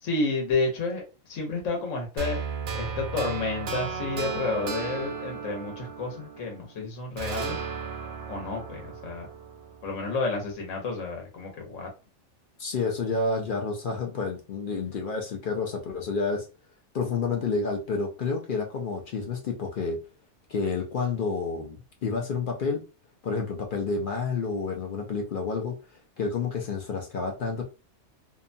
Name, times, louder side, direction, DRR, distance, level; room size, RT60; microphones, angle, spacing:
voice 1, 0.0-2.4 2.7-7.6 8.3-9.3 9.8-11.9, left 3 dB, 80° left, 1.2 m, -30 dB
sound 1, 2.2-6.7 7.2-10.2, right 5 dB, 65° right, 0.8 m, -35 dB
voice 2, 12.6-16.5 16.9-20.0 20.5-22.8 23.2-25.7 26.2-27.6, left 4 dB, 55° left, 0.6 m, -29 dB
2.7 x 2.1 x 2.5 m
omnidirectional pair, 1.3 m